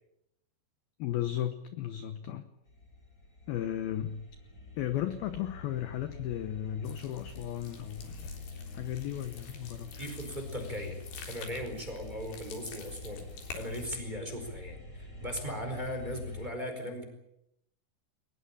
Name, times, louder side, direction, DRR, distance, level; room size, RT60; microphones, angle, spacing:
voice 1, 1.0-2.5 3.5-4.3 4.8-8.3 8.7-10.1, left 11 dB, 75° left, 10 dB, 2.2 m, -35 dB
sound 1, 2.6-16.5, left 3 dB, 20° left, 6.5 m, -46 dB
sound 2, 6.9-13.9, left 5 dB, 55° left, 5.5 m, -49 dB
voice 2, 9.9-11.0 11.3-17.0, equal, 10° right, 4 dB, 4.3 m, -38 dB
22.5 x 20.0 x 8.8 m, 0.81 s
omnidirectional pair, 5.8 m